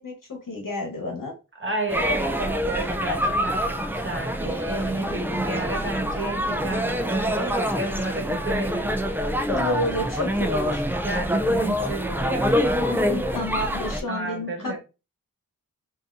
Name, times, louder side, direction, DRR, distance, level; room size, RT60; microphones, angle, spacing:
voice 1, 0.0-1.3 9.5-10.8 12.8-14.8, left 1 dB, 70° left, 1.2 m, -30 dB
voice 2, 1.6-9.0 11.0-12.6 14.1-14.8, right 2 dB, 35° right, 1.3 m, -31 dB
sound 1, 1.9-14.0, equal, 5° right, 0.4 m, -26 dB
3.5 x 2.7 x 2.5 m
wide cardioid pair, 55°, 34 cm